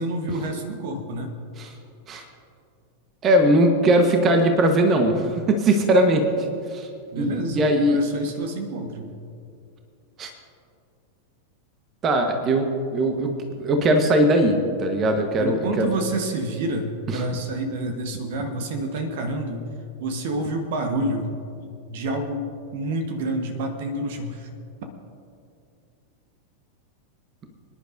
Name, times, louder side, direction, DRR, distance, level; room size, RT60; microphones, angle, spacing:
voice 1, 0.0-1.3 7.1-9.1 15.4-19.6 20.0-21.3 21.9-24.5, right 1 dB, 55° right, 5 dB, 1.3 m, -28 dB
voice 2, 3.2-6.3 6.7-6.9 7.1-8.0 10.2-10.3 12.0-15.9, right 1 dB, 30° right, 5 dB, 1.2 m, -20 dB
25.5 x 10.5 x 2.7 m, 2.4 s
figure-of-eight pair, 90°, 0 cm